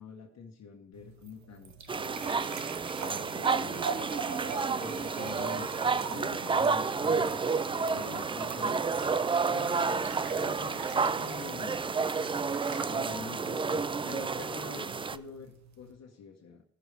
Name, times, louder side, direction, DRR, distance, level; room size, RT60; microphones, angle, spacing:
voice 1, 0.0-2.4 3.0-4.1 4.8-7.4 7.8-8.8 9.5-11.8 12.8-16.6, left 6 dB, 60° left, 1 dB, 1.5 m, -46 dB
sound 1, 0.9-15.9, right 6 dB, 65° right, 1.3 m, -43 dB
sound 2, 1.9-15.2, right 4 dB, 20° right, 0.3 m, -30 dB
17.0 x 6.3 x 3.4 m, 0.75 s
cardioid pair, 90°, 30 cm